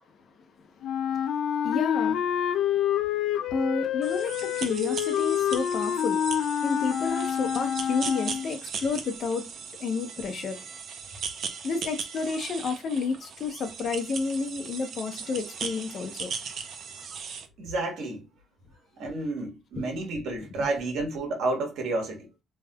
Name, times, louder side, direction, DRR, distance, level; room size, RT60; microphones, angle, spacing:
Wind instrument woodwind instrument, 0.8-8.5, left 9 dB, 80° left, 0.4 m, -27 dB
voice 1, 1.6-2.2 3.4-9.5 9.8-10.6 11.6-16.3 19.8-19.9, left 4 dB, 60° left, 0.9 m, -30 dB
sound 1, 4.0-17.5, right 6 dB, 65° right, 0.7 m, -38 dB
voice 2, 17.6-18.3 19.0-22.3, right 2 dB, 80° right, 1.5 m, -30 dB
3.5 x 3.2 x 2.3 m
cardioid pair, 90°, 0 cm